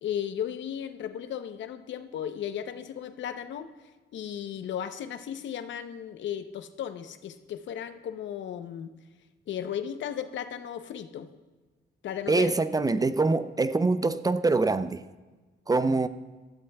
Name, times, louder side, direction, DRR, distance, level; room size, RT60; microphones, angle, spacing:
voice 1, 0.0-3.7 4.1-8.9 9.5-11.3 12.0-12.5, left 9 dB, 70° left, 0.7 m, -35 dB
voice 2, 12.3-15.0 15.7-16.1, right 3 dB, 20° right, 0.4 m, -24 dB
18.5 x 13.0 x 2.3 m
cardioid pair, 90°, 20 cm